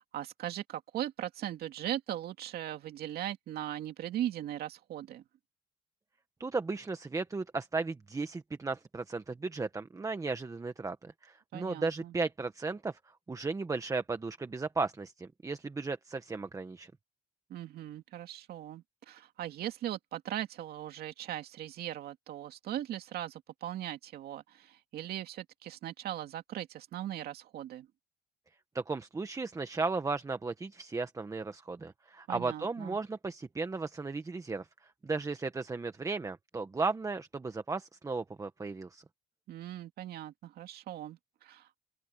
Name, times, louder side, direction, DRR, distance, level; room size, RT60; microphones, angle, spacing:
voice 1, 0.0-5.2 11.5-12.1 17.5-27.9 32.3-33.0 39.5-41.8, right 12 dB, 65° right, 2.3 m, -39 dB
voice 2, 6.4-13.0 13.3-16.9 28.7-34.7 35.0-39.0, right 3 dB, 20° right, 1.4 m, -35 dB
open air
cardioid pair, 110°, 17 cm